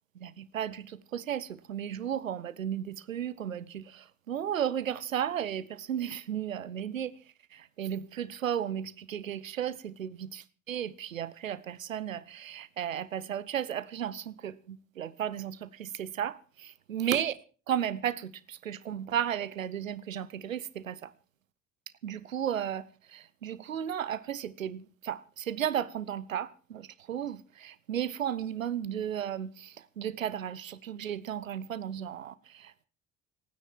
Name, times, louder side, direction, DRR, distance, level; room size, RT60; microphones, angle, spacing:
voice 1, 0.1-7.2 7.5-16.4 16.9-17.4 17.7-21.1 22.0-32.9, right 9 dB, 90° right, 0.7 m, -34 dB
26.5 x 9.7 x 4.5 m
figure-of-eight pair, 50°, 39 cm